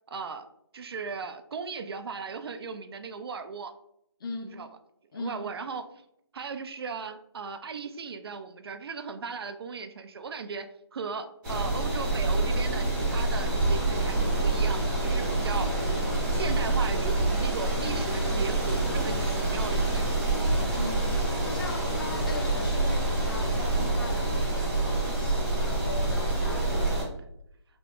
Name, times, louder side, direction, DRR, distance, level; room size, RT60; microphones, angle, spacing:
voice 1, 0.1-0.5 0.7-3.7 4.4-4.7 5.1-5.8 6.3-15.7 16.3-20.3, right 5 dB, 60° right, 0.4 m, -37 dB
voice 2, 4.2-4.6 5.1-5.5 20.7-21.1 21.4-27.0, left 3 dB, 55° left, 0.4 m, -40 dB
sound 1, 11.4-27.0, right 2 dB, 10° right, 0.8 m, -27 dB
3.4 x 2.1 x 2.8 m
figure-of-eight pair, 160°, 14 cm